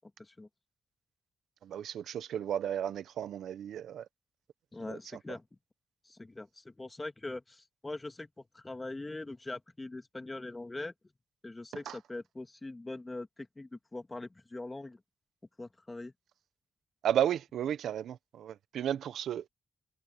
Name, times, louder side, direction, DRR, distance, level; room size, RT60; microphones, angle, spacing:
voice 1, 0.2-0.5 4.7-5.4 6.0-10.9 11.4-15.0 15.6-16.1, left 2 dB, 25° left, 2.3 m, -42 dB
voice 2, 1.6-4.0 4.9-5.0 11.9-12.0 17.0-19.4, right 10 dB, 80° right, 1.1 m, -33 dB
cardioid pair, 65°, 0 cm